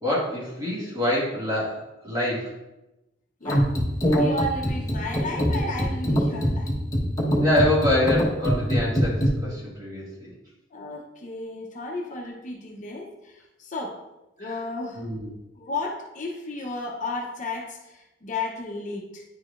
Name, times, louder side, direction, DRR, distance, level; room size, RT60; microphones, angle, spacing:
voice 1, 0.0-2.5 7.4-10.3 14.4-14.5 14.9-15.3, left 1 dB, 20° right, -6 dB, 1.9 m, -26 dB
voice 2, 3.4-3.7 4.2-6.7 10.7-14.0 14.4-15.1 15.6-19.2, left 2 dB, 40° left, 1 dB, 0.7 m, -33 dB
sound 1, 3.4-9.3, equal, 20° left, 1.1 m, -23 dB
9.7 x 4.7 x 2.4 m, 0.97 s
head